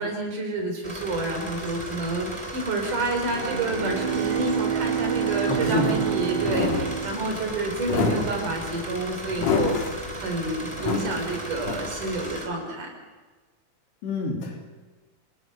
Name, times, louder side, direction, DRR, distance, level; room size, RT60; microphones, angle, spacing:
voice 1, 0.0-9.8 10.2-12.9, right 2 dB, 50° right, 3 dB, 5.4 m, -29 dB
sound 1, 0.8-12.5, right 1 dB, 10° right, 2.8 m, -36 dB
Bowed string instrument, 3.2-8.1, right 9 dB, 85° right, 3.7 m, -28 dB
voice 2, 5.4-6.0 14.0-14.7, left 2 dB, 85° left, 1 dB, 5.6 m, -28 dB
sound 2, 5.6-12.2, left 4 dB, 45° left, 3.5 m, -29 dB
26.5 x 19.5 x 6.9 m, 1.3 s
omnidirectional pair, 4.7 m